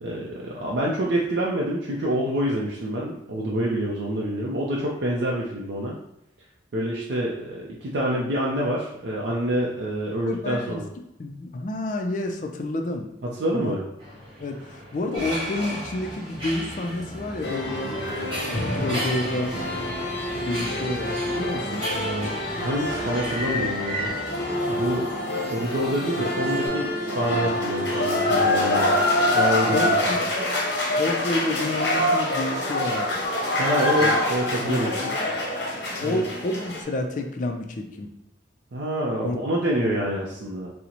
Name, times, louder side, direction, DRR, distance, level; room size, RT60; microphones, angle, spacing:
voice 1, 0.0-5.9 6.7-10.9 13.2-13.8 21.9-24.1 24.7-25.1 25.5-29.0 29.3-29.9 33.6-34.9 36.0-36.2 38.7-40.7, right 1 dB, 65° right, -4 dB, 0.5 m, -27 dB
voice 2, 10.3-10.8 11.2-13.1 13.5-13.8 14.4-17.9 18.5-19.6 20.4-21.9 29.7-30.2 31.0-33.2 34.0-34.2 34.6-35.1 36.0-38.1 39.2-39.4 39.7-40.1, left 2 dB, 45° left, 4 dB, 0.4 m, -29 dB
sound 1, 14.0-24.1, left 1 dB, 30° right, 0.8 m, -34 dB
sound 2, 15.2-26.7, right 1 dB, 5° right, 0.9 m, -43 dB
sound 3, 17.4-36.8, left 1 dB, 65° left, 0.7 m, -26 dB
3.8 x 2.0 x 2.9 m, 0.81 s
head